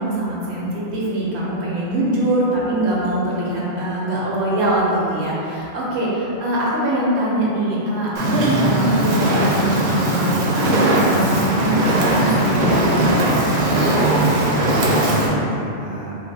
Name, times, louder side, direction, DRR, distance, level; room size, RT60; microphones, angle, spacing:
voice 1, 0.0-13.0, right 1 dB, 80° right, -5 dB, 1.0 m, -22 dB
Fire, 8.1-15.3, right 1 dB, 60° right, 0.7 m, -19 dB
voice 2, 14.1-16.1, equal, 75° left, -8 dB, 1.1 m, -33 dB
3.9 x 2.1 x 2.6 m, 2.9 s
omnidirectional pair, 1.1 m